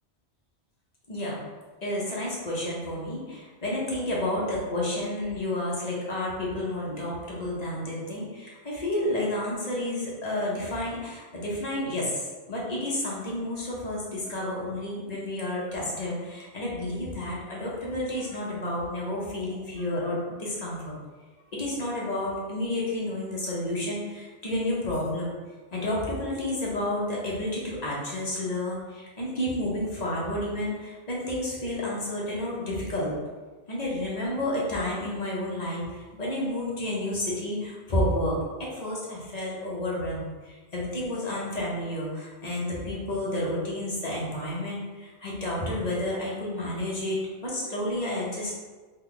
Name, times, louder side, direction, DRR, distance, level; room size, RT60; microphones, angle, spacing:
voice 1, 1.1-1.4 1.8-20.9 21.5-25.3 25.7-33.2 33.7-48.5, left 1 dB, 40° left, -5 dB, 0.8 m, -30 dB
3.3 x 2.2 x 3.8 m, 1.3 s
omnidirectional pair, 1.1 m